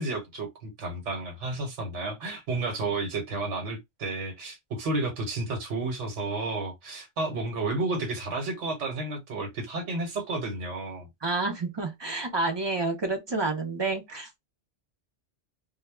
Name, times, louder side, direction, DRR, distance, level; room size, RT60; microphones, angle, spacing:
voice 1, 0.0-11.1 14.1-14.2, right 2 dB, 85° right, 1.2 m, -32 dB
voice 2, 11.2-14.4, right 3 dB, 35° right, 0.5 m, -29 dB
2.2 x 2.1 x 3.2 m
omnidirectional pair, 1.2 m